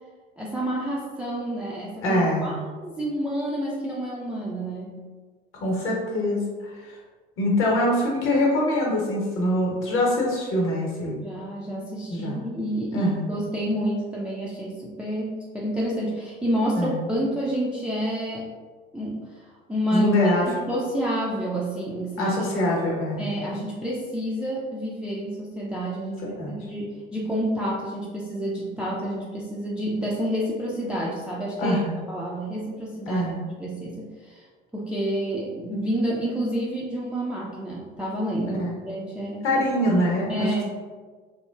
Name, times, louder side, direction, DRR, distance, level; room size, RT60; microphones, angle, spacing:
voice 1, 0.4-5.0 11.2-18.5 18.9-19.3 19.7-22.5 23.2-31.8 32.1-33.2 33.6-34.5 34.7-38.6 38.9-39.6 40.3-40.6, equal, 5° right, -5 dB, 0.3 m, -29 dB
voice 2, 2.0-2.6 5.6-6.9 7.4-11.2 12.1-12.4 12.9-13.3 16.8-17.0 19.9-20.5 22.2-23.3 26.2-26.5 31.6-31.9 33.1-33.4 38.6-38.8 39.4-40.5, left 1 dB, 45° left, -2 dB, 0.9 m, -24 dB
3.0 x 2.1 x 2.3 m, 1.4 s
figure-of-eight pair, 60°, 29 cm